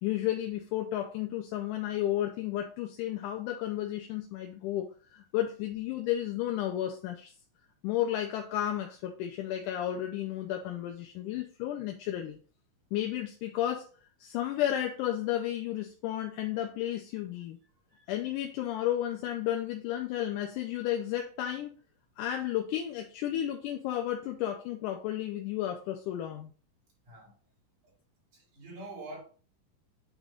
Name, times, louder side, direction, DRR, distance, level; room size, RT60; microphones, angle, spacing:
voice 1, 0.0-7.3 7.8-12.4 12.9-13.9 14.2-17.6 18.1-21.7 22.2-26.5, left 12 dB, 80° left, 2.0 m, -32 dB
voice 2, 28.3-29.2, right 2 dB, 65° right, 4.8 m, -45 dB
8.9 x 3.0 x 3.8 m
omnidirectional pair, 3.9 m